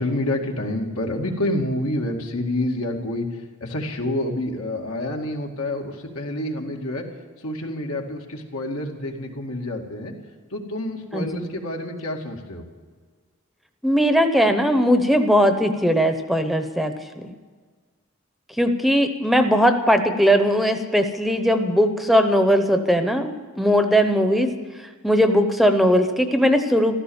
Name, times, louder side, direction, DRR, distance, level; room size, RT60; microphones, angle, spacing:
voice 1, 0.0-3.3 3.6-7.0 7.4-10.1 10.5-12.6, left 1 dB, 80° left, 1 dB, 2.3 m, -28 dB
voice 2, 11.1-11.5 13.8-17.3 18.6-24.5 25.0-27.0, equal, ahead, 7 dB, 0.8 m, -19 dB
15.0 x 13.0 x 7.2 m, 1.5 s
head